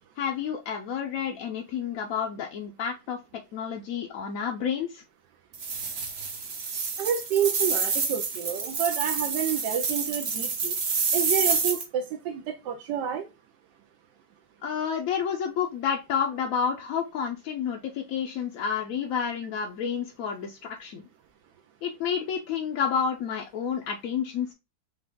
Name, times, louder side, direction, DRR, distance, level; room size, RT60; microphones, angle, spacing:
voice 1, 0.2-3.2 3.5-5.0 14.6-21.0 21.8-24.5, left 7 dB, 70° left, 0.9 m, -30 dB
sound 1, 5.5-11.8, right 5 dB, 50° right, 1.1 m, -28 dB
voice 2, 7.0-10.7 11.1-13.3, right 9 dB, 85° right, 1.3 m, -29 dB
5.1 x 2.4 x 3.5 m
omnidirectional pair, 1.9 m